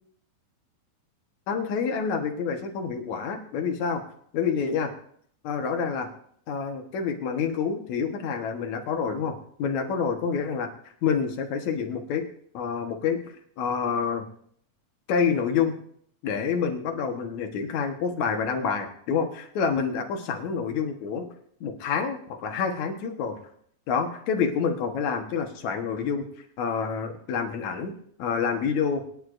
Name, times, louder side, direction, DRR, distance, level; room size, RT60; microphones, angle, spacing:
voice 1, 1.5-4.0 4.3-4.9 5.4-6.1 6.5-10.7 11.0-12.2 12.5-13.2 13.6-14.3 15.1-15.7 16.2-21.3 21.6-23.4 23.9-26.2 26.6-27.9 28.2-29.0, left 6 dB, 70° left, 5 dB, 2.6 m, -27 dB
23.5 x 10.5 x 2.6 m, 0.64 s
omnidirectional pair, 3.5 m